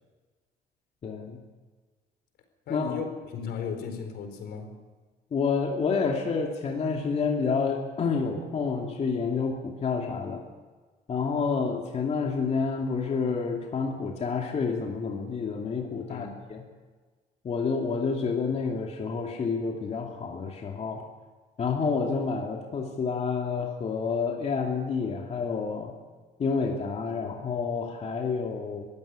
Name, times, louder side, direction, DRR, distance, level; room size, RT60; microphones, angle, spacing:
voice 1, 1.0-1.4 2.7-3.0 5.3-10.4 11.1-16.6 17.4-21.0 21.6-25.9 26.4-28.9, left 5 dB, 40° left, 1 dB, 2.6 m, -29 dB
voice 2, 2.7-4.8 16.1-16.4, left 6 dB, 75° left, 6 dB, 4.4 m, -36 dB
22.0 x 15.5 x 8.5 m, 1.4 s
cardioid pair, 110°, 17 cm